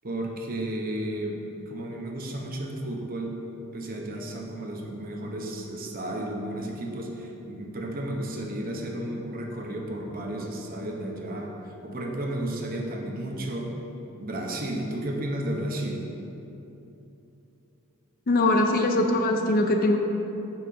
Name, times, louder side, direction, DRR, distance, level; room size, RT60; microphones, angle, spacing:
voice 1, 0.0-3.3 3.7-11.5 11.8-13.7 14.2-16.1, right 1 dB, 40° right, 0 dB, 0.7 m, -33 dB
voice 2, 18.3-20.0, left 2 dB, 40° left, 4 dB, 0.5 m, -22 dB
5.7 x 4.2 x 6.2 m, 2.9 s
head